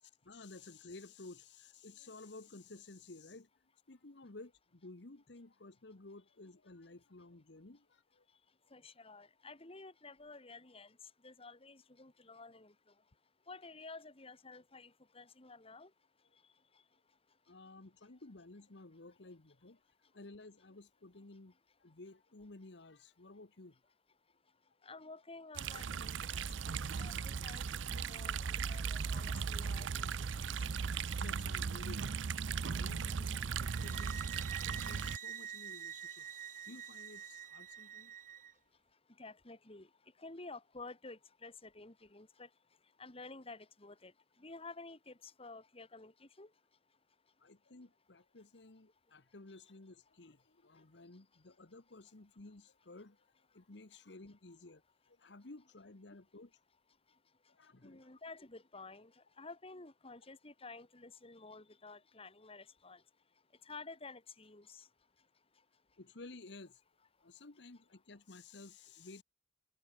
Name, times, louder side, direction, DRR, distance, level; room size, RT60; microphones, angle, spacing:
voice 1, 0.0-8.2 17.5-19.8 20.1-23.8 31.1-38.1 47.4-53.2 53.5-56.6 57.5-58.1 66.0-66.8 67.2-69.2, left 2 dB, 65° left, 1.3 m, -54 dB
voice 2, 8.7-10.9 11.2-12.7 13.5-15.9 24.8-26.3 26.6-30.1 30.6-30.7 39.2-39.9 40.2-42.5 43.0-44.1 44.4-46.5 57.8-59.1 59.4-63.0 63.7-64.8, left 3 dB, 30° left, 2.1 m, -52 dB
sound 1, 25.6-35.2, right 6 dB, 85° right, 0.6 m, -37 dB
sound 2, 33.6-38.5, right 10 dB, 45° right, 1.2 m, -47 dB
open air
head